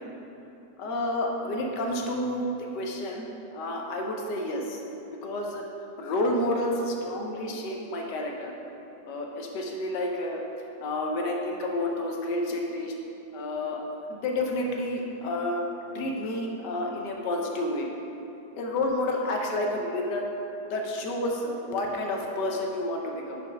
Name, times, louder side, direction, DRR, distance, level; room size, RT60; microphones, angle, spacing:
voice 1, 0.8-4.8 5.2-5.6 6.0-8.6 9.0-10.4 10.8-13.0 13.3-13.8 14.1-15.6 15.9-17.9 18.5-20.3 20.7-23.4, left 1 dB, 65° left, 1 dB, 1.2 m, -30 dB
6.5 x 4.6 x 5.2 m, 3.0 s
omnidirectional pair, 2.2 m